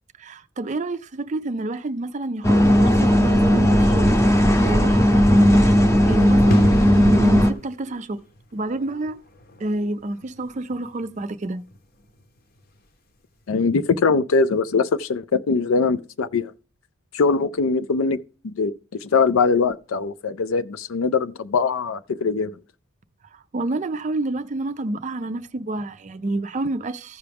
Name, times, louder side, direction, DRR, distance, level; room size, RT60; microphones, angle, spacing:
voice 1, 0.2-5.6 6.1-8.2 8.5-9.2 9.6-11.6 23.5-27.2, right 2 dB, 35° right, 0.4 m, -28 dB
sound 1, 2.4-7.5, equal, 15° left, 0.7 m, -16 dB
sound 2, 6.5-13.0 13.2-13.4, left 1 dB, 45° left, 0.8 m, -34 dB
voice 2, 13.5-16.5 17.1-18.2 18.4-18.7 19.0-22.5, left 4 dB, 75° left, 0.4 m, -21 dB
14.5 x 5.7 x 3.5 m
head